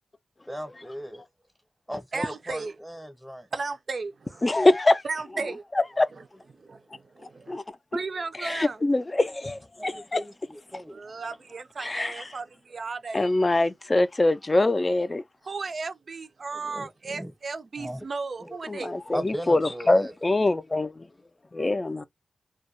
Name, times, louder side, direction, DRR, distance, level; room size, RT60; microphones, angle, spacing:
voice 1, 0.5-1.2 1.9-3.5 6.5-6.7 9.8-11.0 16.5-17.3 17.8-18.0 18.4-18.5 19.1-20.1, equal, ahead, 0.8 m, -37 dB
voice 2, 2.1-2.7 3.5-4.7 5.0-5.6 6.1-6.2 6.6-7.6 7.9-8.8 10.9-13.5 15.4-18.9, right 4 dB, 60° right, 0.4 m, -35 dB
voice 3, 4.4-5.0 6.0-6.1 7.5-7.6 8.4-10.2 11.8-12.2 13.1-15.2 18.7-20.9 21.5-22.0, left 2 dB, 30° left, 0.4 m, -23 dB
2.2 x 2.2 x 2.6 m
cardioid pair, 65°, 0 cm